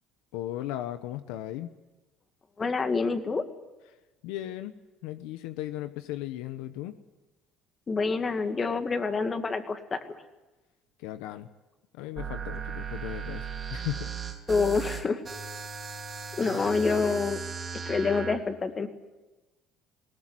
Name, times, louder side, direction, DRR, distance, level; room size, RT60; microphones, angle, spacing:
voice 1, 0.3-1.7 4.2-4.7 5.0-6.9 11.0-11.5 11.9-14.1, left 13 dB, 90° left, 10 dB, 1.0 m, -36 dB
voice 2, 2.6-3.4 7.9-10.0 14.5-15.2 16.4-17.4 17.8-18.9, left 4 dB, 30° left, 7 dB, 2.2 m, -27 dB
sound 1, 12.2-18.4, right 6 dB, 30° right, 3.6 m, -37 dB
20.5 x 18.0 x 9.8 m, 1.1 s
cardioid pair, 105°, 0 cm